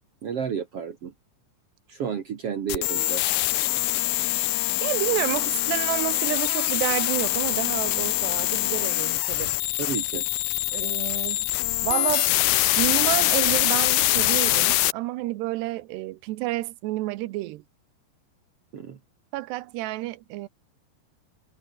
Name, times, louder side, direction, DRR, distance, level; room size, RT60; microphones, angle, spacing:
voice 1, 0.2-1.1 1.9-3.2 9.8-10.2 18.7-19.0, right 7 dB, 60° right, 1.6 m, -31 dB
sound 1, 2.7-14.9, left 17 dB, 85° left, 1.9 m, -24 dB
voice 2, 4.8-9.5 10.7-11.5 11.8-12.3 12.8-17.6 19.3-20.5, right 18 dB, 80° right, 2.9 m, -30 dB
omnidirectional pair, 4.9 m